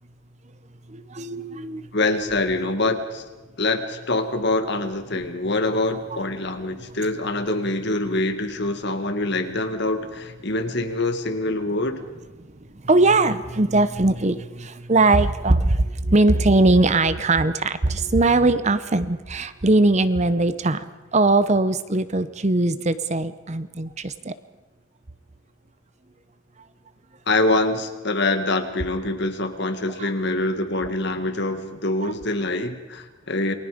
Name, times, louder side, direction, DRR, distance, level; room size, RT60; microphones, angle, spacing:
voice 1, 0.9-1.8 5.1-5.2 12.8-20.8 21.1-24.3 30.0-30.1 32.0-32.1, right 2 dB, 30° right, 13 dB, 0.8 m, -20 dB
voice 2, 1.9-3.2 3.6-12.0 27.3-33.5, left 2 dB, 55° left, 7 dB, 1.8 m, -25 dB
28.5 x 21.0 x 5.1 m, 1.2 s
head